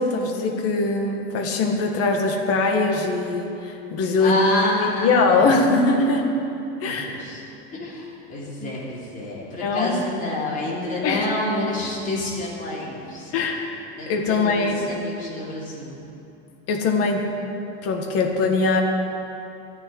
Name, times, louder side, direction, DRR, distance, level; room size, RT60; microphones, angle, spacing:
voice 1, 0.0-4.4 4.8-6.3 6.8-7.2 8.6-8.7 9.6-10.0 11.0-11.3 13.3-13.7 14.1-14.8 16.7-17.3 17.8-18.8, left 3 dB, 45° left, 2 dB, 1.8 m, -22 dB
voice 2, 4.2-5.3 6.8-7.4 7.7-13.5 14.0-16.0, left 2 dB, 25° left, -6 dB, 3.6 m, -28 dB
14.0 x 6.8 x 9.8 m, 2.8 s
supercardioid pair, 125°, 32 cm